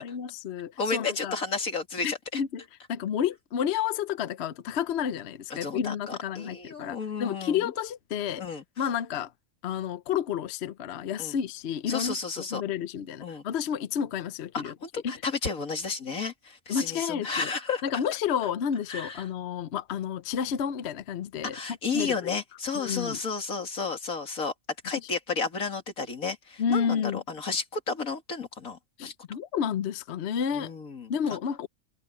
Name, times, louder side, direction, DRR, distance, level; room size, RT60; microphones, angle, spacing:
voice 1, 0.0-1.3 2.0-2.6 2.9-8.4 8.8-9.3 9.6-14.7 15.0-15.1 16.7-17.5 17.8-21.6 21.9-22.3 22.8-23.2 26.6-27.2 29.0-30.7 31.1-31.7, left 8 dB, 55° left, 0.9 m, -30 dB
voice 2, 0.8-2.4 5.6-7.7 8.4-8.6 11.2-11.4 11.9-12.6 13.2-13.4 14.5-18.0 18.9-19.2 21.5-24.5 24.8-29.1 30.5-31.1, left 4 dB, 90° left, 3.0 m, -32 dB
omnidirectional pair, 1.4 m